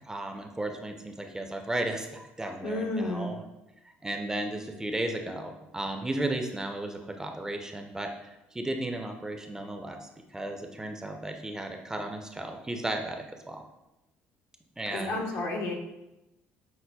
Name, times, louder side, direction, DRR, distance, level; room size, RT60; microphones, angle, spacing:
voice 1, 0.0-3.4 4.0-13.6 14.8-15.2, right 1 dB, 15° right, 4 dB, 0.4 m, -34 dB
voice 2, 2.6-3.3 14.9-15.7, left 2 dB, 75° left, 0 dB, 0.7 m, -31 dB
5.4 x 2.1 x 2.2 m, 0.94 s
supercardioid pair, 80°, 5 cm